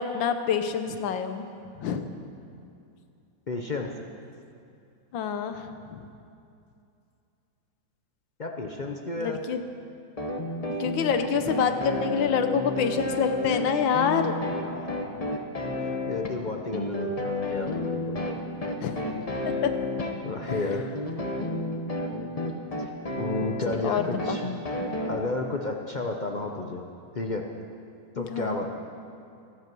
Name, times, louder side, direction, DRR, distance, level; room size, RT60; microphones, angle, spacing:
voice 1, 0.0-1.4 1.8-2.0 5.1-5.7 9.2-9.6 10.8-14.4 18.8-19.0 19.5-19.6 23.8-24.4 28.2-28.6, left 7 dB, 80° left, 8 dB, 1.6 m, -26 dB
voice 2, 3.5-3.9 8.4-9.4 14.5-15.3 15.7-18.2 20.2-21.0 23.1-24.5 25.1-26.8 27.1-27.5 28.2-28.7, left 2 dB, 55° left, 2 dB, 0.5 m, -32 dB
sound 1, 10.2-25.1, left 2 dB, 30° left, 0.8 m, -31 dB
24.5 x 8.2 x 6.1 m, 2.6 s
omnidirectional pair, 2.1 m